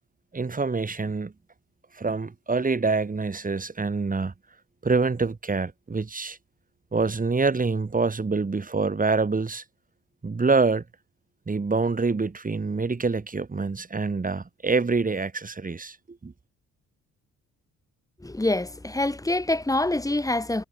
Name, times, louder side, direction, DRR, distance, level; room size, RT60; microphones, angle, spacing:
voice 1, 0.3-1.3 1.9-4.3 4.8-6.4 6.9-9.6 10.2-10.8 11.5-16.0 16.2-16.3, right 4 dB, 25° right, 7.7 m, -26 dB
voice 2, 18.2-20.6, left 2 dB, 10° left, 6.6 m, -25 dB
cardioid pair, 90°, 30 cm